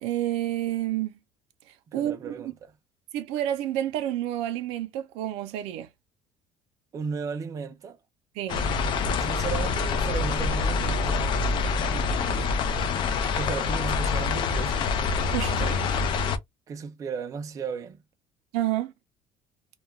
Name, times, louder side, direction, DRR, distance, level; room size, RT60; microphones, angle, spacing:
voice 1, 0.0-1.2 1.9-2.3 3.1-5.9 8.4-8.7 15.3-15.9 18.5-18.9, right 12 dB, 90° right, 0.5 m, -29 dB
voice 2, 1.9-2.5 6.9-8.0 9.2-11.3 11.9-12.5 13.3-14.8 16.7-18.0, right 6 dB, 30° right, 0.4 m, -35 dB
sound 1, 8.5-16.4, left 4 dB, 50° left, 0.4 m, -26 dB
2.2 x 2.2 x 2.9 m
cardioid pair, 145°, 10 cm